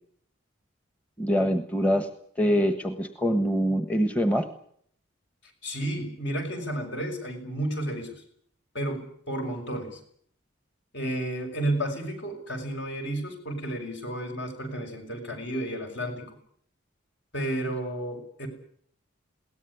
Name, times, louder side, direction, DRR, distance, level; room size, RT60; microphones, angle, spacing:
voice 1, 1.2-2.1 2.4-4.5, equal, 5° left, 9 dB, 1.3 m, -24 dB
voice 2, 5.6-8.1 8.7-10.0 10.9-16.3 17.3-18.5, right 1 dB, 55° left, 4 dB, 6.0 m, -32 dB
21.5 x 18.0 x 9.8 m, 0.65 s
head